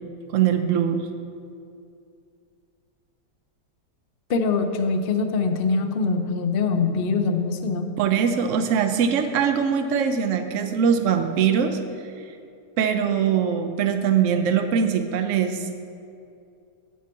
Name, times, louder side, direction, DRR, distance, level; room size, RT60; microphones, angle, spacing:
voice 1, 0.3-1.1 8.0-11.8 12.8-15.7, right 7 dB, 60° right, 7 dB, 0.9 m, -22 dB
voice 2, 4.3-7.9, left 4 dB, 55° left, 6 dB, 0.6 m, -23 dB
10.5 x 7.2 x 4.5 m, 2.4 s
omnidirectional pair, 1.8 m